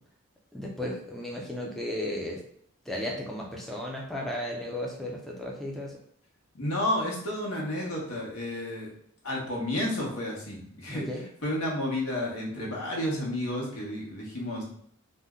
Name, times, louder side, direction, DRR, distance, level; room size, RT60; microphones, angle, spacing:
voice 1, 0.5-2.4 2.9-5.9 10.9-11.2, left 1 dB, ahead, -2 dB, 0.3 m, -34 dB
voice 2, 6.5-8.9 9.2-14.6, left 1 dB, 85° left, -3 dB, 1.0 m, -31 dB
2.7 x 2.1 x 3.5 m, 0.67 s
head